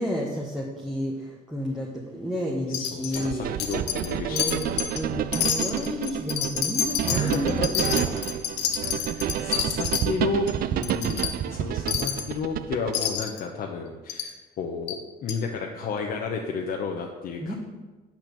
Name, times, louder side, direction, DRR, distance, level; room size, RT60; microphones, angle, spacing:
voice 1, 0.0-3.5 4.3-8.2 17.4-17.5, equal, 5° right, -4 dB, 1.3 m, -31 dB
Wind chime, 2.7-3.3 3.6-4.1 4.4-5.0 5.3-10.0 10.5-10.6 10.8-11.3 11.9-12.3 12.9-13.4 14.1-14.3 14.9-15.0 15.3-15.4, left 9 dB, 80° left, 1.0 m, -28 dB
voice 2, 2.7-4.9 7.1-8.0 9.1-17.5, left 4 dB, 60° left, 1 dB, 1.0 m, -32 dB
sound 1, 3.1-13.1, right 10 dB, 60° right, 0.5 m, -29 dB
8.4 x 6.2 x 6.9 m, 1.2 s
cardioid pair, 110°, 17 cm